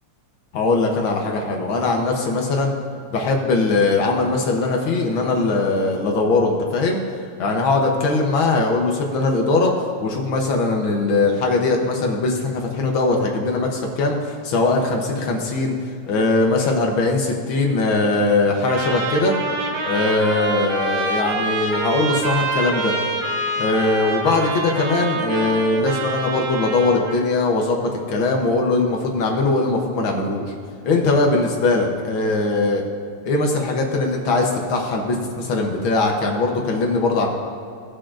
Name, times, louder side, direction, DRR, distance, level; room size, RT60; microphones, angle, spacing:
voice 1, 0.5-2.7 3.1-7.0 7.4-9.7 10.0-15.7 16.1-19.3 19.8-22.9 23.6-30.5 30.8-32.8 33.2-37.3, left 3 dB, 70° left, 1 dB, 1.2 m, -20 dB
Trumpet, 18.7-27.2, right 3 dB, 65° right, 2.0 m, -26 dB
17.5 x 6.7 x 2.5 m, 2.4 s
omnidirectional pair, 3.3 m